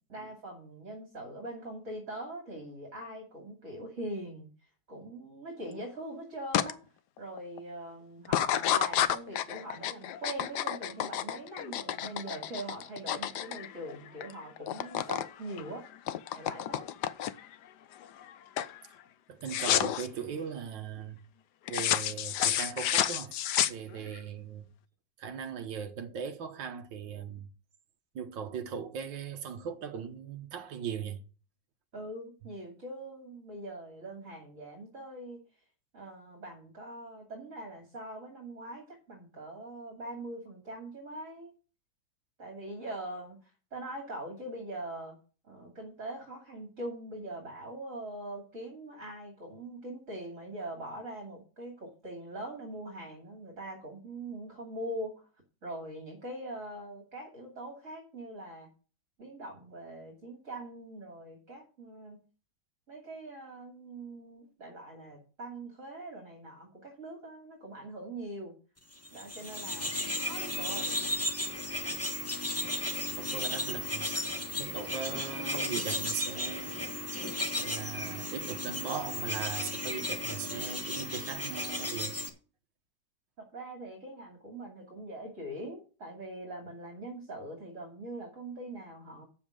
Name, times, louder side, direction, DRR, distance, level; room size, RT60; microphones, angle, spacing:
voice 1, 0.1-4.5 4.9-6.8 7.2-15.8 16.3-16.9 31.9-35.4 35.9-41.5 42.4-45.2 45.4-55.3 55.6-58.7 59.2-62.2 62.9-68.5 69.1-70.9 83.4-89.3, right 1 dB, 40° right, 2.8 m, -42 dB
sound 1, 6.5-6.7 7.2-7.6 8.2-14.3 14.6-15.3 15.6-17.5 18.0-18.3 18.6-18.8 19.5-20.1 21.7-24.2, left 11 dB, 65° left, 1.1 m, -30 dB
voice 2, 19.3-21.2 21.7-23.4 23.7-24.7 25.2-27.5 28.2-31.2 73.2-74.1 74.6-76.9 77.6-82.2, right 7 dB, 65° right, 1.8 m, -39 dB
sound 2, 69.0-82.3, left 1 dB, 10° left, 0.9 m, -35 dB
8.6 x 7.1 x 6.2 m
omnidirectional pair, 2.2 m